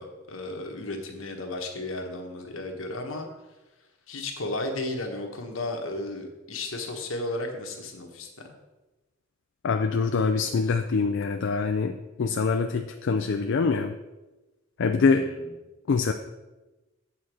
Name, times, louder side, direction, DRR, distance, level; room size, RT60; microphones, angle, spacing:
voice 1, 0.0-3.3 4.1-8.5 15.0-15.5, left 2 dB, 80° left, 3 dB, 1.3 m, -34 dB
voice 2, 9.6-13.9 14.8-15.3 15.9-16.1, left 4 dB, 65° left, 6 dB, 0.4 m, -24 dB
8.6 x 4.2 x 6.1 m, 1.1 s
head